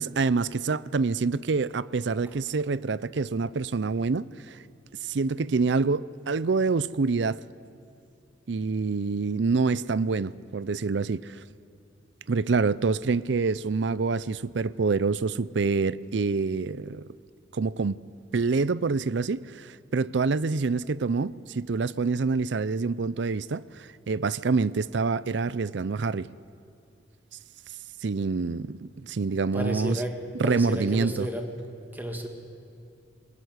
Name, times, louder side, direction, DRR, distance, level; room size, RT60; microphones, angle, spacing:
voice 1, 0.0-4.6 5.0-7.4 8.5-11.4 12.3-17.0 17.5-18.0 18.3-26.3 28.0-30.0 30.4-31.3, right 4 dB, 65° right, 0.5 m, -26 dB
voice 2, 29.5-31.5 31.9-32.3, equal, 10° right, 2.2 m, -32 dB
21.5 x 21.0 x 9.6 m
head